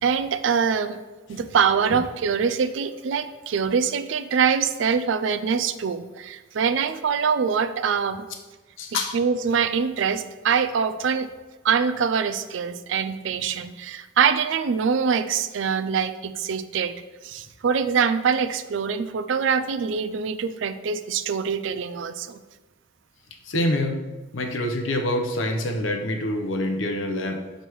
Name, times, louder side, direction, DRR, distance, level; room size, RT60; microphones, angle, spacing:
voice 1, 0.0-1.0 1.3-8.3 9.1-11.3 11.6-16.9 17.2-22.4, right 6 dB, 75° right, 12 dB, 0.4 m, -24 dB
voice 2, 8.8-9.1 23.5-24.0 24.3-27.4, left 1 dB, 80° left, 3 dB, 0.8 m, -26 dB
6.2 x 5.3 x 3.1 m, 1.2 s
head